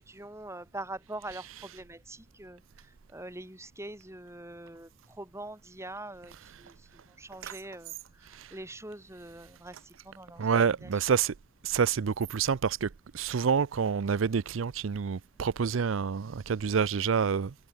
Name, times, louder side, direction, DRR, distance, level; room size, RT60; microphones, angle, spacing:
voice 1, 0.0-10.9, right 1 dB, 15° right, 4.7 m, -44 dB
voice 2, 10.4-11.3 11.6-17.5, right 6 dB, 80° right, 0.5 m, -28 dB
head